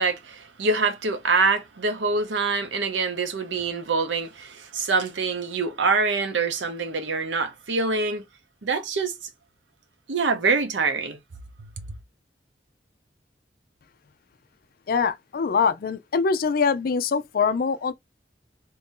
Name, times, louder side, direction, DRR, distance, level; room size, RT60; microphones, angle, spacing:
voice 1, 0.0-8.2 8.6-9.1 10.1-11.2, right 4 dB, 80° right, 0.7 m, -25 dB
voice 2, 14.9-17.9, left 5 dB, 55° left, 0.4 m, -23 dB
2.9 x 2.6 x 3.6 m
head